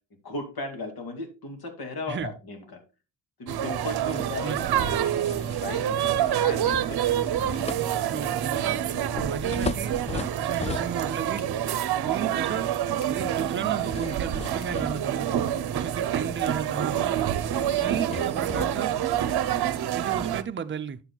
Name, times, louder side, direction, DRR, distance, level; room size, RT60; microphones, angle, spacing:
voice 1, 0.2-2.8 3.4-7.1 8.1-8.3, left 2 dB, 60° left, 2.4 m, -36 dB
sound 1, 3.5-20.4, right 10 dB, 65° right, 0.7 m, -27 dB
voice 2, 4.0-4.8 8.1-8.8 9.1-11.5 12.0-12.7 13.1-15.3 15.7-17.2 17.8-18.9 19.9-21.0, right 7 dB, 30° right, 0.6 m, -34 dB
sound 2, 4.1-11.4 11.8-12.0 13.6-15.8 16.2-16.4 16.7-16.8 17.3-20.0, left 5 dB, 15° left, 0.4 m, -39 dB
sound 3, 9.0-10.7 11.1-12.1 12.6-12.7 13.0-13.2 13.7-13.8 14.3-14.4 14.6-14.8 15.2-15.3 15.5-15.6 15.9-16.0 16.3-17.5, left 2 dB, 85° left, 1.6 m, -46 dB
9.8 x 7.7 x 2.3 m
cardioid pair, 105°, 41 cm